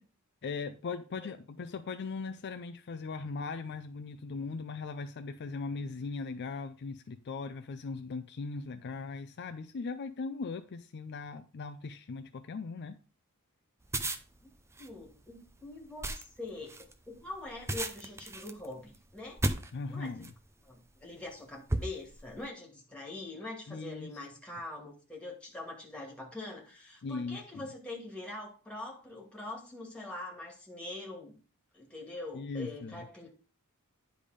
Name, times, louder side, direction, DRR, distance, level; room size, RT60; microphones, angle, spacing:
voice 1, 0.4-13.0 19.7-20.3 23.7-24.1 27.0-27.7 32.3-33.1, left 4 dB, 50° left, 0.4 m, -39 dB
sound 1, 13.8-20.5 21.1-21.3 21.7-22.4, right 1 dB, 10° right, 0.6 m, -36 dB
voice 2, 14.8-19.4 19.9-20.1 20.6-31.4 31.7-33.3, left 2 dB, 5° left, 2.3 m, -44 dB
10.0 x 3.5 x 5.0 m
head